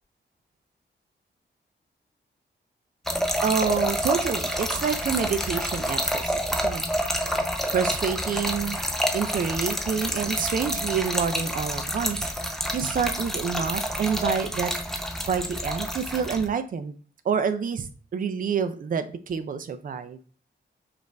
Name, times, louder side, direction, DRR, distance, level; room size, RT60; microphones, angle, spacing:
Trickle dribble / Fill (with liquid), 3.1-16.5, equal, ahead, 0.6 m, -28 dB
voice 1, 3.4-6.8 7.7-8.8 9.1-12.3 12.7-14.7 15.2-16.9 17.2-20.2, right 6 dB, 45° right, 10 dB, 0.4 m, -27 dB
5.3 x 2.5 x 3.3 m, 0.40 s
wide cardioid pair, 130°, 19 cm